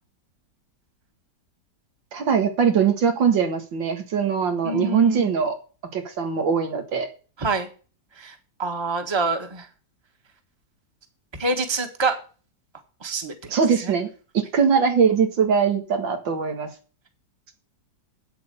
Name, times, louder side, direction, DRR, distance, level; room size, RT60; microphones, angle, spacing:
voice 1, 2.1-5.6 5.9-7.1 13.5-14.1 14.3-16.7, right 6 dB, 85° right, 5 dB, 2.5 m, -21 dB
voice 2, 4.6-5.3 7.4-7.7 8.2-8.3 8.6-9.7 11.4-12.2 13.0-13.3 13.8-13.9, right 3 dB, 15° right, 6 dB, 1.4 m, -26 dB
8.6 x 7.6 x 6.9 m, 0.37 s
omnidirectional pair, 2.0 m